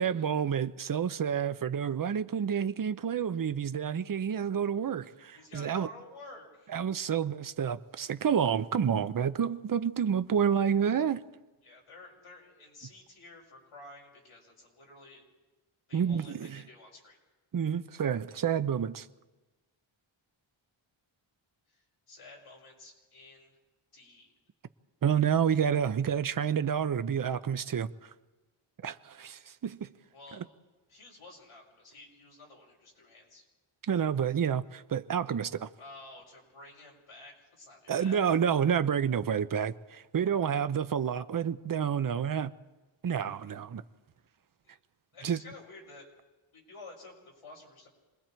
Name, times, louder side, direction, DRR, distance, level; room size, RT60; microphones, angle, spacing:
voice 1, 0.0-5.9 6.7-11.2 15.9-16.6 17.5-19.1 25.0-27.9 28.8-29.9 30.4-30.5 33.9-35.7 37.9-42.5 43.0-43.8 45.2-45.4, right 8 dB, 40° right, 0.6 m, -29 dB
voice 2, 5.3-6.7 11.6-15.2 15.9-17.2 21.7-23.5 23.9-24.3 30.1-30.5 30.9-33.4 35.8-38.2 44.6-44.8 45.1-46.1 46.5-47.9, left 2 dB, 85° left, 6.8 m, -51 dB
28.0 x 21.0 x 4.5 m
wide cardioid pair, 175°, 50 cm